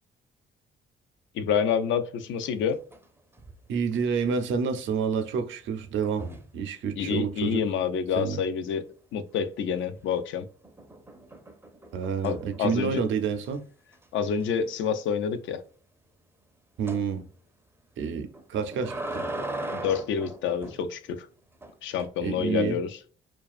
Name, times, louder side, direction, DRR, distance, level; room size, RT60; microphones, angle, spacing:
voice 1, 1.3-2.8 7.0-8.9 9.1-10.5 12.2-13.0 14.1-15.6 19.7-21.3 21.8-23.0, left 7 dB, 75° left, 0.4 m, -28 dB
sound 1, 2.4-3.1 3.3-3.7 6.0-6.6 9.7-10.2 10.6-13.0 13.5-13.6 13.9-14.0 14.4-14.5 16.9-17.1 18.3-20.8 21.6-22.1, right 2 dB, 10° right, 0.4 m, -38 dB
voice 2, 3.7-6.3 6.5-7.6 8.2-8.4 11.9-13.6 16.8-17.2 18.0-19.2 22.2-22.8, right 6 dB, 75° right, 0.5 m, -28 dB
2.4 x 2.2 x 2.3 m
cardioid pair, 90°, 20 cm